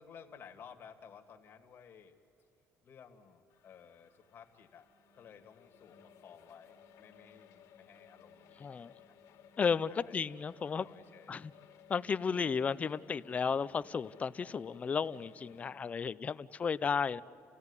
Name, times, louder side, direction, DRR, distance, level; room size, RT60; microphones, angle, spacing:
voice 1, 0.0-2.1 2.8-4.9 5.1-9.2 9.7-10.2 10.6-11.4 13.8-14.0, left 7 dB, 40° left, 4 dB, 2.0 m, -56 dB
sound 1, 3.5-15.7, left 7 dB, 65° left, 2.1 m, -60 dB
voice 2, 8.6-8.9 9.6-10.9 11.3-11.5 11.9-17.2, left 6 dB, 25° left, 15 dB, 0.5 m, -33 dB
29.5 x 16.5 x 9.7 m, 2.9 s
cardioid pair, 155°, 6 cm